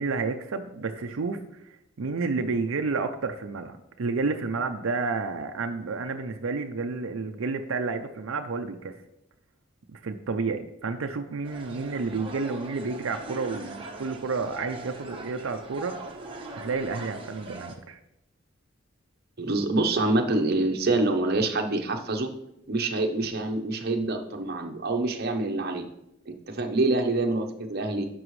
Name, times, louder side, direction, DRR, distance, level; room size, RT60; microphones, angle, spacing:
voice 1, 0.0-9.0 9.9-16.0 16.5-18.0, right 4 dB, 85° right, 6 dB, 0.5 m, -30 dB
sound 1, 11.4-17.8, right 2 dB, 25° right, 1.1 m, -41 dB
voice 2, 19.4-22.3 22.7-25.9 26.3-28.1, right 2 dB, 50° right, 4 dB, 0.9 m, -26 dB
11.0 x 6.1 x 3.2 m, 0.83 s
head